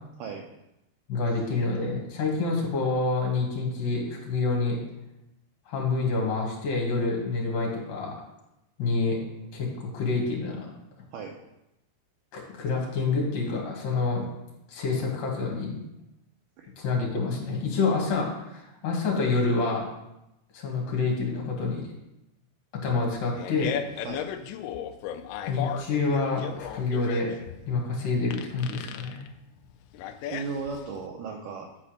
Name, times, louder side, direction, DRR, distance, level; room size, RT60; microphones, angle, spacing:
voice 1, 1.1-4.8 5.7-8.1 8.8-9.2 9.5-10.7 12.3-14.3 14.7-15.8 16.8-19.9 20.5-21.9 22.8-23.9 25.5-27.3 27.7-29.2, left 3 dB, 60° left, -1 dB, 3.5 m, -27 dB
Fart, 23.1-31.0, left 9 dB, 80° left, 2.4 m, -36 dB
voice 2, 30.3-31.8, right 5 dB, 90° right, 1 dB, 1.9 m, -36 dB
8.9 x 4.3 x 6.5 m, 0.89 s
omnidirectional pair, 4.9 m